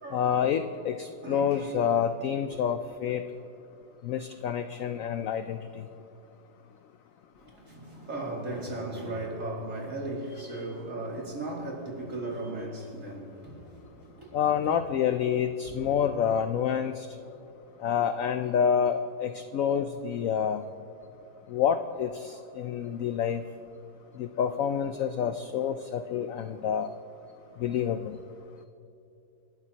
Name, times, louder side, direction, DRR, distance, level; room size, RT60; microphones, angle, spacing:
voice 1, 0.1-3.2 4.0-5.8 14.3-17.1 17.8-20.6 21.5-23.5 24.2-26.9 27.6-28.2, left 8 dB, 75° left, 0.7 m, -28 dB
voice 2, 1.2-1.8 7.3-14.7 15.7-15.9, right 2 dB, 45° right, 2.8 m, -37 dB
29.0 x 12.0 x 2.9 m
omnidirectional pair, 1.9 m